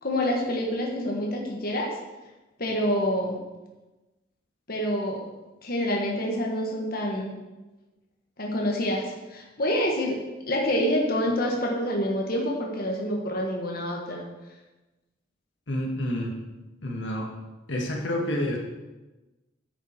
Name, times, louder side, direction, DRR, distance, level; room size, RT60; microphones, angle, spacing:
voice 1, 0.0-1.9 2.6-3.4 4.7-5.2 5.6-7.3 8.4-14.2, equal, 55° left, -1 dB, 1.5 m, -27 dB
voice 2, 15.7-16.3 16.8-17.3 17.7-18.6, left 1 dB, 85° left, 0 dB, 1.6 m, -28 dB
9.7 x 7.2 x 4.5 m, 1.1 s
head